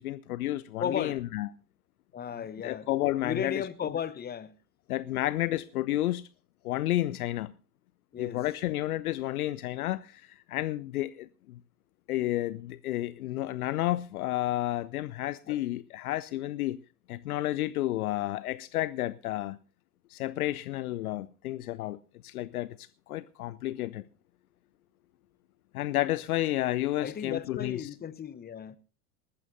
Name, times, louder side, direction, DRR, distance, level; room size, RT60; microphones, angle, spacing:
voice 1, 0.0-1.5 2.6-3.7 4.9-6.2 6.6-7.5 8.2-11.6 12.1-16.8 17.1-19.6 20.1-24.1 25.7-27.8, left 15 dB, 70° left, 0.6 m, -31 dB
voice 2, 0.8-1.2 2.1-2.9 3.2-4.5 8.1-8.4 15.5-15.6 27.0-28.8, left 8 dB, 20° left, 0.9 m, -35 dB
19.5 x 14.0 x 2.7 m
figure-of-eight pair, 80°, 46 cm